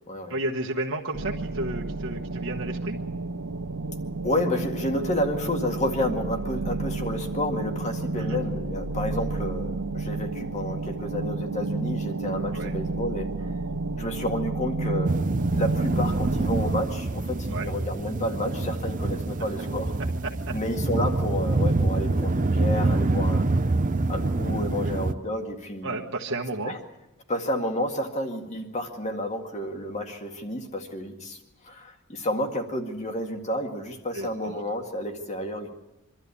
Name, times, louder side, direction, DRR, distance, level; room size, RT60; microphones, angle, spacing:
voice 1, 0.3-3.0 8.1-8.4 12.5-12.8 17.5-17.7 20.2-20.5 24.8-24.9 25.8-26.7 34.1-34.6, right 2 dB, 60° right, 0 dB, 1.3 m, -32 dB
sound 1, 1.1-16.8, right 3 dB, 85° right, 1.0 m, -30 dB
voice 2, 4.2-13.5 14.0-15.2 15.5-19.9 20.5-23.4 24.1-26.0 26.6-26.8 27.3-31.4 31.6-35.7, left 1 dB, 30° left, 4 dB, 2.0 m, -30 dB
sound 2, 15.0-25.1, right 2 dB, 35° right, 0.6 m, -26 dB
24.5 x 13.0 x 8.4 m, 1.0 s
head